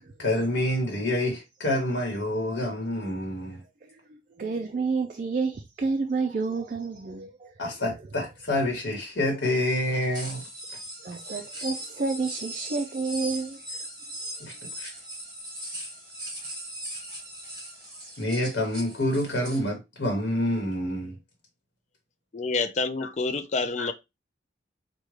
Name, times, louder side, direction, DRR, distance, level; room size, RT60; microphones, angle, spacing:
voice 1, 0.2-3.6 7.6-10.4 14.4-14.9 18.2-21.1 23.0-23.1 23.8-23.9, left 1 dB, 90° left, 1.0 m, -27 dB
voice 2, 3.8-7.5 11.0-13.6, right 4 dB, 45° right, 0.4 m, -30 dB
sound 1, 10.1-19.6, equal, 20° right, 1.5 m, -39 dB
voice 3, 22.3-23.9, left 3 dB, 40° left, 0.4 m, -28 dB
4.8 x 2.2 x 3.1 m
head